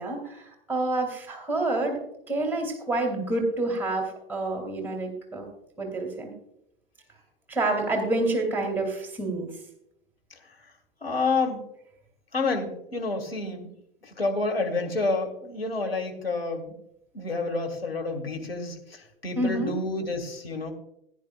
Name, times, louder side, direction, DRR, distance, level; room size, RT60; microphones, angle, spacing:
voice 1, 0.0-5.5 5.8-6.3 7.5-9.5 19.4-19.7, right 2 dB, 5° right, 1 dB, 2.8 m, -28 dB
voice 2, 11.0-11.6 12.3-13.7 14.0-16.7 17.1-20.7, left 3 dB, 80° left, 1 dB, 2.1 m, -29 dB
17.5 x 9.9 x 2.4 m, 0.77 s
figure-of-eight pair, 90°, 29 cm